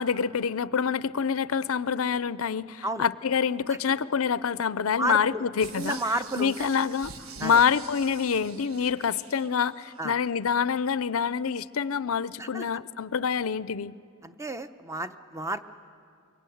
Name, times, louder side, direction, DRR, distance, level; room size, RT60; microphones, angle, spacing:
voice 1, 0.0-6.0 6.4-7.1 7.4-13.9, left 6 dB, 70° left, 17 dB, 0.6 m, -26 dB
voice 2, 5.0-5.5 5.7-6.7 7.4-7.6 10.0-10.1 12.4-12.6 14.2-15.7, right 2 dB, 15° right, 10 dB, 0.8 m, -32 dB
sound 1, 5.6-10.0 10.5-10.6, right 6 dB, 70° right, 1.3 m, -46 dB
25.5 x 23.0 x 9.3 m, 2.3 s
head